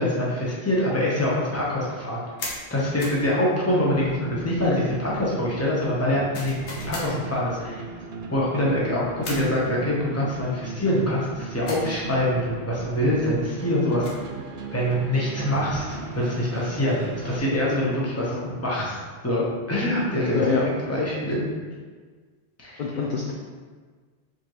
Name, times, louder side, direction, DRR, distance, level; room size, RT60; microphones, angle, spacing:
voice 1, 0.0-2.2 2.7-7.8 8.3-14.0 14.7-17.0 17.2-20.4 20.9-21.4 22.6-22.8, left 1 dB, 15° left, -6 dB, 0.9 m, -25 dB
sound 1, 2.4-2.6 3.0-3.2 6.3-7.1 9.2-9.5 11.7-11.9 13.8-14.3, left 2 dB, 80° left, 1.2 m, -35 dB
sound 2, 3.8-17.4, right 5 dB, 70° right, 0.8 m, -37 dB
voice 2, 17.7-18.5 20.3-20.6 22.8-23.3, left 5 dB, 60° left, -2 dB, 0.6 m, -27 dB
4.8 x 3.5 x 3.0 m, 1.5 s
omnidirectional pair, 1.1 m